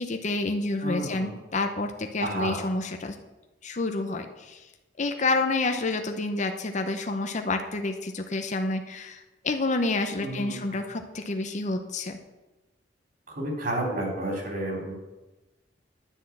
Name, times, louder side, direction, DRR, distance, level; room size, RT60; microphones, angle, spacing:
voice 1, 0.0-3.2 3.6-4.7 5.0-12.2, left 2 dB, 40° left, 5 dB, 0.7 m, -29 dB
voice 2, 0.8-1.3 2.2-2.6 10.2-10.6 13.3-14.9, right 1 dB, 55° right, 1 dB, 3.7 m, -31 dB
10.0 x 6.2 x 8.6 m, 1.1 s
head